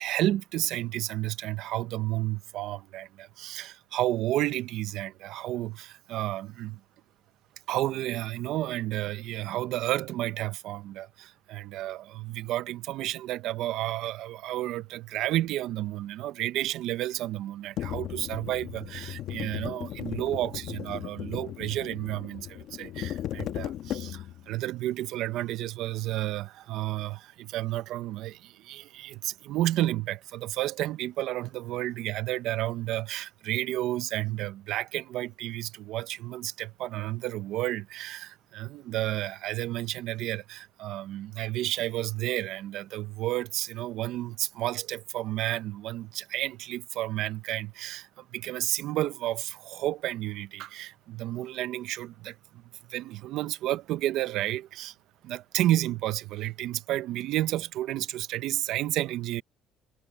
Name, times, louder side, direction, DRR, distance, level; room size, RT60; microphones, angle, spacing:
voice 1, 0.0-6.8 7.7-52.6 52.9-54.9 55.2-59.4, right 15 dB, 65° right, 0.7 m, -31 dB
sound 1, 17.8-24.5, left 12 dB, 60° left, 1.2 m, -36 dB
cardioid pair, 135°, 0 cm